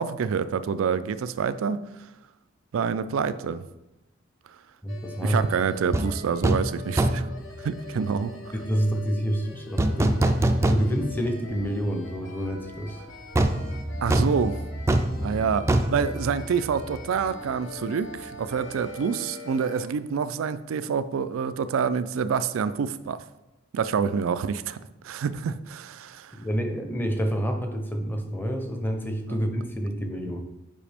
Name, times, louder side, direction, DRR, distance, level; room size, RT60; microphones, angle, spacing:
voice 1, 0.0-1.8 2.7-3.6 5.2-7.3 7.6-8.3 14.0-14.6 15.2-23.2 23.7-24.8 25.0-26.4 29.3-29.4, right 6 dB, 85° right, 13 dB, 0.4 m, -27 dB
voice 2, 4.8-5.4 8.5-10.2 10.7-13.0 26.4-30.4, equal, 10° left, 4 dB, 0.7 m, -28 dB
sound 1, 4.9-19.9, left 3 dB, 65° left, 1.1 m, -43 dB
sound 2, 5.9-6.1 6.4-6.7 7.0-7.4 9.8-11.2 11.6-11.7 13.3-17.0 17.3-17.4, right 1 dB, 15° right, 0.3 m, -24 dB
7.4 x 5.0 x 3.4 m, 0.95 s
head